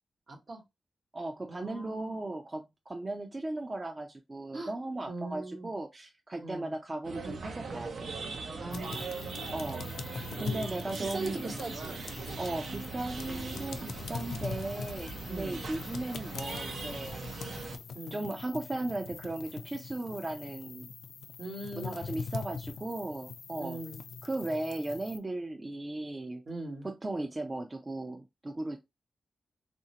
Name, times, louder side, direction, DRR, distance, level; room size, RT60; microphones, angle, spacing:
voice 1, 0.3-0.6 1.5-2.2 4.5-4.7 5.1-5.7 6.4-6.7 8.6-9.5 11.0-12.0 13.2-13.5 15.3-15.7 17.9-18.3 21.4-22.0 23.6-24.0 26.5-26.9, right 2 dB, 60° right, 1.1 m, -40 dB
voice 2, 1.1-8.1 9.5-9.8 10.1-11.4 12.4-17.3 18.1-20.9 21.8-23.8 24.2-26.4 26.8-28.8, right 2 dB, 30° right, 0.5 m, -37 dB
sound 1, 7.0-17.8, right 4 dB, 75° right, 0.6 m, -40 dB
sound 2, 8.7-25.2, left 5 dB, 85° left, 0.4 m, -43 dB
3.2 x 2.6 x 2.8 m
cardioid pair, 70°, 0 cm